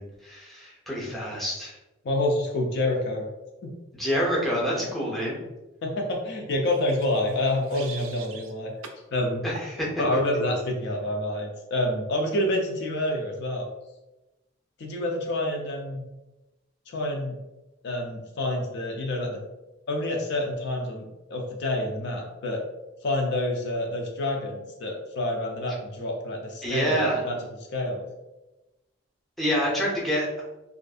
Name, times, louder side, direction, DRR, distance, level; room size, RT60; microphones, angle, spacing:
voice 1, 0.0-1.8 3.9-5.4 9.4-9.9 26.6-27.2 29.4-30.3, equal, ahead, -5 dB, 0.6 m, -27 dB
voice 2, 2.0-3.3 3.6-3.7 5.8-8.7 9.1-9.4 10.0-13.7 14.8-16.0 16.9-17.4 17.8-19.4 19.9-22.6 23.0-27.4 27.7-28.1, left 1 dB, 55° left, 1 dB, 0.4 m, -28 dB
sound 1, 6.7-8.5 8.8-9.0 9.5-9.7, right 6 dB, 90° right, 0.4 m, -43 dB
2.5 x 2.4 x 2.3 m, 1.0 s
head